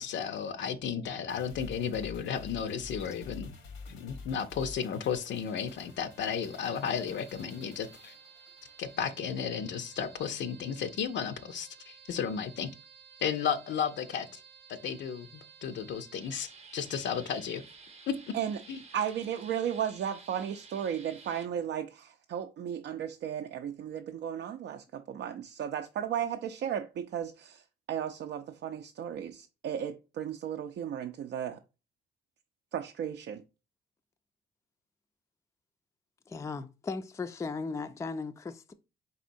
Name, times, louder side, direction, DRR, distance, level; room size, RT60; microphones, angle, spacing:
voice 1, 0.0-3.5 3.9-8.1 8.8-12.7 13.2-14.4 14.7-17.6 18.1-18.4 18.7-18.8, left 7 dB, 65° left, 0.5 m, -34 dB
sound 1, 1.3-9.9 10.2-10.3, left 4 dB, 85° left, 1.0 m, -49 dB
sound 2, 5.2-21.5, right 5 dB, 30° right, 0.7 m, -54 dB
voice 2, 18.9-31.6 32.7-33.4, right 9 dB, 60° right, 0.4 m, -35 dB
voice 3, 36.3-38.7, left 4 dB, 15° left, 0.4 m, -37 dB
4.1 x 3.6 x 2.6 m
cardioid pair, 90°, 20 cm